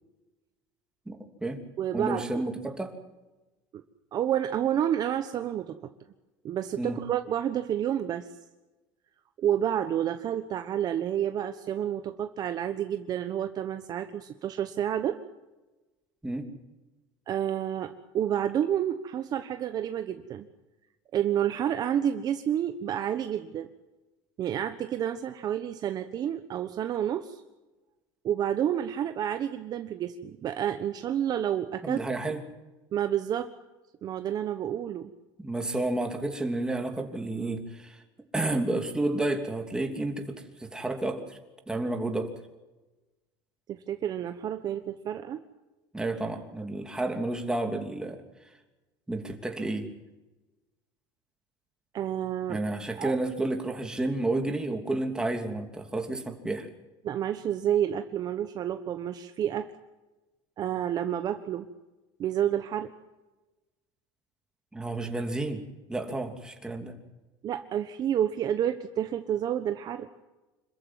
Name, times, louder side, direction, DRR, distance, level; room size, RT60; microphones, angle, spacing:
voice 1, 1.1-1.6 1.9-2.9 6.8-7.0 16.2-16.5 31.8-32.4 35.4-38.0 38.3-41.4 41.7-42.3 45.9-48.2 49.1-49.9 52.5-56.7 64.7-65.6 65.9-66.9, right 2 dB, 5° right, 4 dB, 3.0 m, -31 dB
voice 2, 1.8-2.4 4.1-5.8 6.4-8.3 9.4-15.2 17.3-20.5 21.1-23.7 24.4-27.4 28.2-32.0 32.9-33.5 34.0-35.1 43.7-45.4 51.9-52.6 52.9-53.1 57.0-59.7 60.6-61.7 62.2-62.9 67.4-70.1, right 10 dB, 40° right, 9 dB, 1.2 m, -29 dB
26.5 x 14.5 x 9.6 m, 1.1 s
cardioid pair, 135°, 10 cm